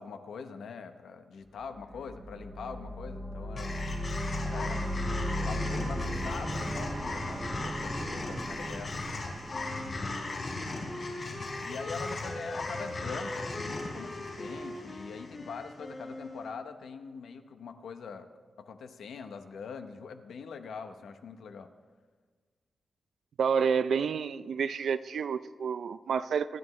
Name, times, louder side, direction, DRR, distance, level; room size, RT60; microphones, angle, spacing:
voice 1, 0.0-3.8 4.4-4.9 5.4-8.9 9.8-10.7 11.6-18.3 18.6-21.7, left 5 dB, 85° left, 0.9 m, -43 dB
sound 1, 1.7-10.6, equal, 10° right, 0.7 m, -36 dB
sound 2, 3.5-15.9, left 3 dB, 35° left, 3.9 m, -38 dB
Wind instrument woodwind instrument, 9.5-16.6, left 1 dB, 20° left, 1.3 m, -42 dB
voice 2, 23.4-26.6, right 6 dB, 60° right, 0.4 m, -29 dB
25.5 x 11.0 x 3.2 m
wide cardioid pair, 175°, 0 cm